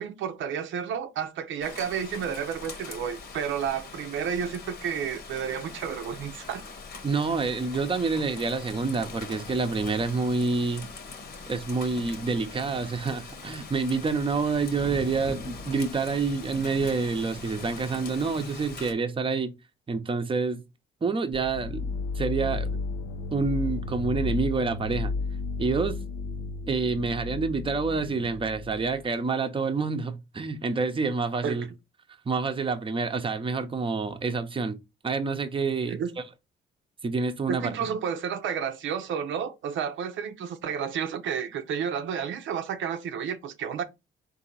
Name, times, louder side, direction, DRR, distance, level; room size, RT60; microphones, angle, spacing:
voice 1, 0.0-6.6 31.4-31.7 35.9-36.1 37.5-43.8, right 7 dB, 75° right, 0.6 m, -31 dB
Rain, 1.6-18.9, left 4 dB, 55° left, 1.2 m, -42 dB
voice 2, 7.0-10.9 11.5-19.5 19.9-20.6 21.0-22.7 23.3-25.1 25.6-26.0 26.7-31.7 32.3-34.8 35.0-36.0 37.0-37.7, right 4 dB, 25° right, 0.7 m, -28 dB
sound 1, 21.3-29.0, left 3 dB, 75° left, 0.6 m, -33 dB
3.8 x 2.7 x 4.1 m
cardioid pair, 90°, 20 cm